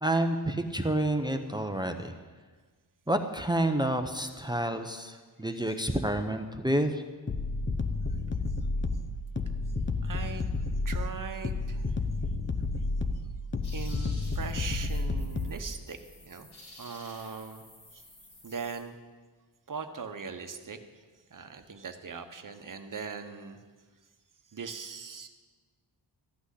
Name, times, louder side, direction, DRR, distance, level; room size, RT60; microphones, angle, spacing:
voice 1, 0.0-2.1 3.1-7.0, right 1 dB, 10° right, 6 dB, 0.7 m, -29 dB
sound 1, 7.3-15.6, left 3 dB, 25° left, 0.7 m, -31 dB
voice 2, 10.0-10.4 10.8-12.0 13.7-16.5 16.8-17.7 17.9-18.0 18.4-19.0 19.7-20.8 21.3-23.6 24.5-25.3, right 5 dB, 45° right, 7 dB, 1.1 m, -40 dB
sound 2, 13.6-18.8, left 1 dB, 60° left, 3.2 m, -52 dB
14.0 x 6.1 x 9.9 m, 1.4 s
wide cardioid pair, 125°, 44 cm